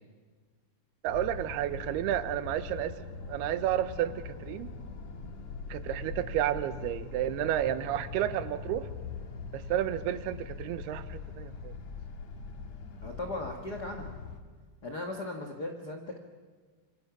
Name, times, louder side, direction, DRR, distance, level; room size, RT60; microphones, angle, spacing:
voice 1, 1.0-2.9 3.3-4.7 5.7-8.9 9.5-11.7, right 12 dB, 80° right, 13 dB, 2.8 m, -31 dB
sound 1, 1.1-14.4, left 4 dB, 55° left, 2.4 m, -42 dB
voice 2, 13.0-14.1 14.8-16.2, left 2 dB, 75° left, 2 dB, 0.9 m, -37 dB
26.5 x 24.5 x 6.0 m, 1.5 s
omnidirectional pair, 4.6 m